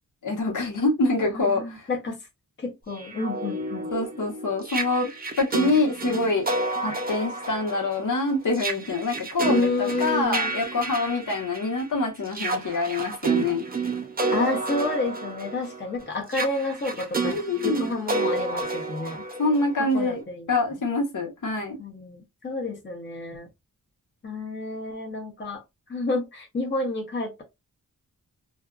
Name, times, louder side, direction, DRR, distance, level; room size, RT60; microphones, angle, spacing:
voice 1, 0.2-1.9 3.9-5.1 5.4-6.4 6.8-13.6 17.2-17.9 19.4-20.2 20.5-21.8, left 2 dB, 60° left, 1.2 m, -25 dB
voice 2, 1.3-2.2 2.6-3.9 9.5-10.5 14.3-17.4 17.6-19.2 19.9-20.5 21.8-23.5 24.2-25.6 25.9-27.4, left 2 dB, 30° left, 0.9 m, -29 dB
sound 1, 3.0-11.8 12.3-20.1, right 3 dB, 25° right, 0.6 m, -30 dB
2.6 x 2.3 x 2.4 m
wide cardioid pair, 85°, 34 cm